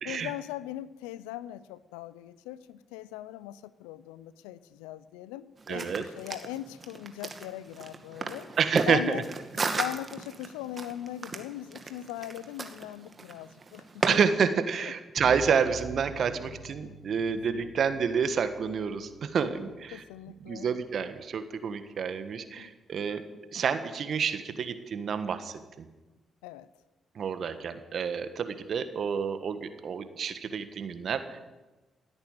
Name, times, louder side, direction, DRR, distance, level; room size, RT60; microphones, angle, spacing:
voice 1, 0.0-8.5 8.9-9.2 9.6-14.2 16.8-17.0 17.3-18.0 19.9-20.7 22.6-22.7 26.4-26.7, left 13 dB, 85° left, 18 dB, 0.5 m, -40 dB
sound 1, 5.6-14.1, right 4 dB, 40° right, 2.1 m, -35 dB
voice 2, 5.7-6.0 8.6-9.2 14.1-20.0 20.4-23.2 23.5-25.9 27.1-31.4, right 6 dB, 60° right, 10 dB, 1.5 m, -29 dB
sound 2, 15.2-21.1, right 2 dB, 15° right, 5.0 m, -47 dB
17.0 x 8.8 x 9.0 m, 1.1 s
hypercardioid pair, 45°, 0 cm